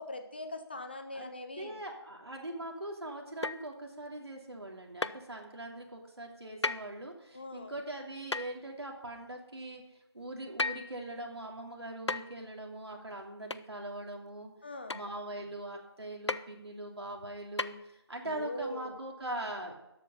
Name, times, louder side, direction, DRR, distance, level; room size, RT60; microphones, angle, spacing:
voice 1, 0.0-1.8 7.3-7.7 14.6-15.0 18.2-18.9, left 1 dB, 25° left, 8 dB, 0.7 m, -41 dB
voice 2, 1.6-9.8 10.1-14.5 14.9-19.7, right 1 dB, 65° right, 1 dB, 2.8 m, -41 dB
sound 1, 3.4-3.7 5.0-5.2 6.6-6.9 8.3-8.6 10.6-10.9 12.1-12.4 13.5-13.7 14.9-15.1 16.3-16.5 17.6-17.7, left 3 dB, 80° left, 0.6 m, -33 dB
12.5 x 8.1 x 5.6 m, 0.90 s
figure-of-eight pair, 165°, 14 cm